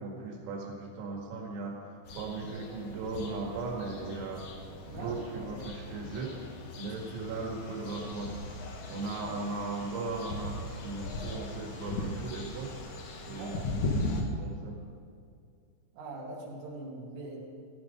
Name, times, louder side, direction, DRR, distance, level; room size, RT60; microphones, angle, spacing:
voice 1, 0.0-4.4 4.9-6.3 6.8-8.3 8.9-12.7 13.3-14.8, right 3 dB, 90° right, -1 dB, 4.8 m, -38 dB
sound 1, 2.1-14.2, left 2 dB, 75° left, 1.7 m, -38 dB
voice 2, 4.9-5.5 13.4-13.9 16.0-17.4, right 2 dB, 70° right, -3 dB, 4.5 m, -42 dB
16.0 x 14.0 x 5.3 m, 2.4 s
omnidirectional pair, 5.9 m